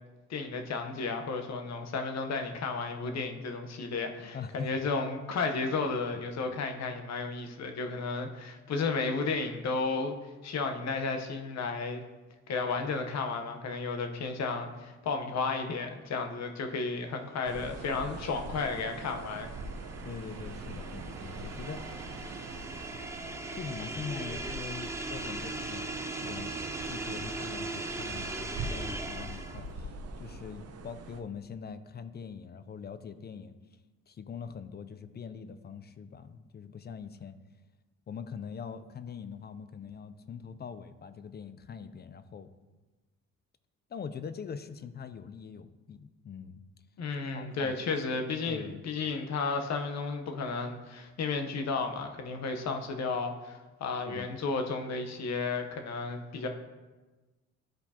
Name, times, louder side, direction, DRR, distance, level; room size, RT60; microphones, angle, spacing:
voice 1, 0.3-12.0 12.5-19.5 47.0-56.5, left 4 dB, 60° left, 5 dB, 1.0 m, -33 dB
voice 2, 4.3-4.9 6.4-6.6 20.0-21.8 23.5-26.5 26.8-33.6 34.1-37.4 38.1-42.5 43.9-46.6 47.1-48.8 54.1-54.4, left 6 dB, 35° left, 12 dB, 0.4 m, -43 dB
sound 1, 17.5-31.2, right 3 dB, 55° right, 0.7 m, -43 dB
sound 2, 17.8-29.7, right 2 dB, 10° right, 0.6 m, -40 dB
12.0 x 4.4 x 2.8 m, 1.2 s
cardioid pair, 90°, 30 cm